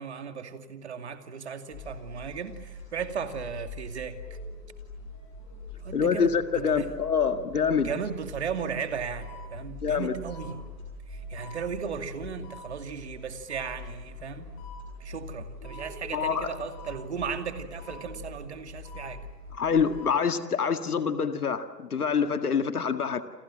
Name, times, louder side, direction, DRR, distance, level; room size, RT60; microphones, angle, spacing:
voice 1, 0.0-4.2 5.8-6.9 7.7-10.6 11.1-14.5 15.0-19.3, right 6 dB, 40° right, 7 dB, 2.5 m, -36 dB
sound 1, 1.7-20.1, left 2 dB, 15° left, 7.5 m, -43 dB
voice 2, 5.9-7.9 9.8-10.1 16.1-16.5 19.5-23.2, left 6 dB, 65° left, 8 dB, 2.0 m, -26 dB
29.0 x 27.0 x 7.5 m, 1.3 s
hypercardioid pair, 170°, 48 cm